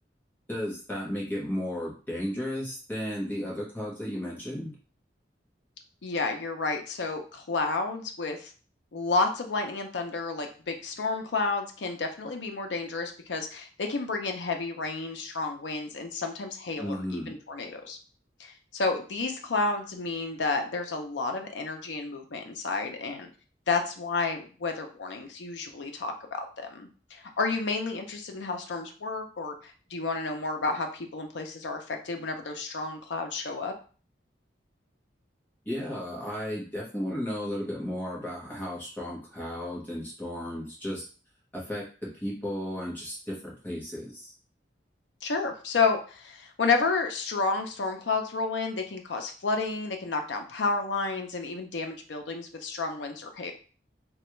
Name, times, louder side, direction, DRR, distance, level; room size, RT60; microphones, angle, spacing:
voice 1, 0.5-4.7 16.8-17.3 35.6-41.0 41.5-44.3, equal, 10° left, -4 dB, 1.0 m, -34 dB
voice 2, 6.0-8.5 8.9-18.0 18.4-23.3 23.7-33.7 45.2-53.5, left 3 dB, 85° left, 4 dB, 0.6 m, -31 dB
3.2 x 2.3 x 3.0 m, 0.38 s
head